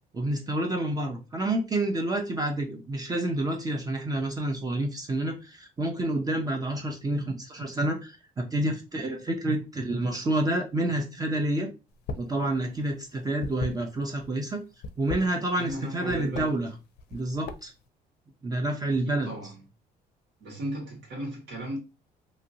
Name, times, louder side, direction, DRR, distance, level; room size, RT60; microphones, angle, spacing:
voice 1, 0.1-11.7 12.2-14.6 15.0-16.7 17.1-17.7 18.4-19.3, right 1 dB, 20° right, 0.5 m, -29 dB
sound 1, 11.9-12.4 12.6-14.3 14.7-15.8 16.1-16.5 17.0-17.8, left 4 dB, 75° left, 0.4 m, -36 dB
voice 2, 15.6-16.6 18.9-19.6 20.4-21.8, right 1 dB, 75° right, 1.7 m, -36 dB
2.9 x 2.6 x 2.7 m
cardioid pair, 110°, 17 cm